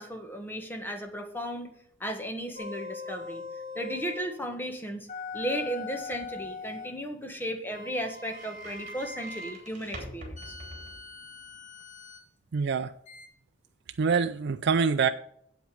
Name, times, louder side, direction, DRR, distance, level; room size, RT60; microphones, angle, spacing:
voice 1, 0.0-1.7 2.0-3.4 3.7-5.1 5.3-10.5, equal, 10° left, 5 dB, 1.5 m, -35 dB
sound 1, 2.6-4.3 5.1-6.9 7.7-9.6 10.4-12.2 13.1-13.3, left 4 dB, 40° left, 1.8 m, -41 dB
sound 2, 5.3-11.6, right 1 dB, 40° right, 3.6 m, -48 dB
voice 2, 12.5-12.9 14.0-15.1, right 5 dB, 60° right, 8 dB, 0.4 m, -25 dB
8.1 x 8.1 x 5.1 m, 0.67 s
head